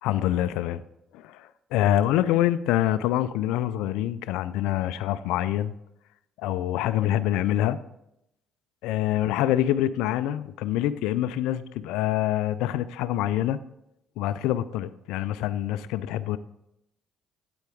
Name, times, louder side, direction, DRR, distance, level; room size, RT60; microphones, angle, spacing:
voice 1, 0.0-0.8 1.1-5.7 6.4-7.8 8.8-13.6 14.2-16.4, left 12 dB, 70° left, 14 dB, 0.4 m, -25 dB
9.0 x 7.9 x 3.5 m, 0.79 s
hypercardioid pair, 50°, 0 cm